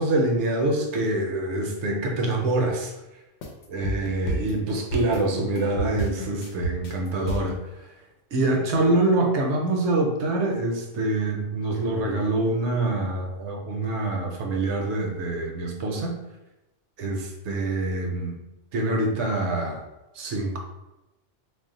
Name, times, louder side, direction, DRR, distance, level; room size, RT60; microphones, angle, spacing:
voice 1, 0.0-2.9 3.7-7.6 8.3-16.2 17.0-18.3 18.7-19.8 20.2-20.6, right 2 dB, 70° right, 1 dB, 0.8 m, -25 dB
sound 1, 3.4-7.6, right 1 dB, 75° left, 0.9 m, -30 dB
2.4 x 2.0 x 3.8 m, 0.99 s
omnidirectional pair, 1.3 m